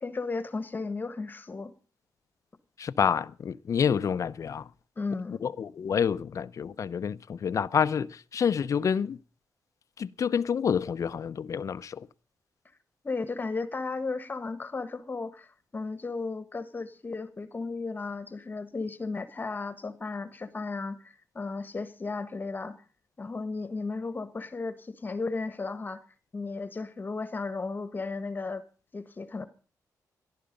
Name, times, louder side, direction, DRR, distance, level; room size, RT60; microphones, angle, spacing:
voice 1, 0.0-1.7 5.0-5.4 13.0-22.8 23.2-26.0 26.3-28.6 28.9-29.4, left 3 dB, 30° left, 1.4 m, -34 dB
voice 2, 2.8-4.7 5.3-9.2 10.0-12.1, left 7 dB, 55° left, 0.7 m, -28 dB
18.5 x 12.5 x 5.3 m
cardioid pair, 105°, 7 cm